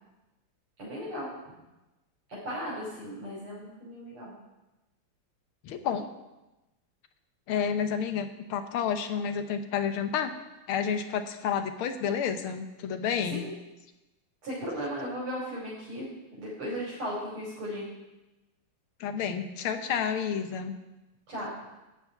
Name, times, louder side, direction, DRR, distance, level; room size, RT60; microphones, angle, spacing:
voice 1, 0.8-1.3 2.3-4.3 13.3-13.5 14.4-17.9 21.3-21.5, equal, 85° right, -7 dB, 4.0 m, -36 dB
voice 2, 5.6-6.1 7.5-10.3 10.7-13.5 19.0-20.8, left 7 dB, 80° left, 8 dB, 1.7 m, -30 dB
13.0 x 5.0 x 9.0 m, 1.0 s
omnidirectional pair, 2.3 m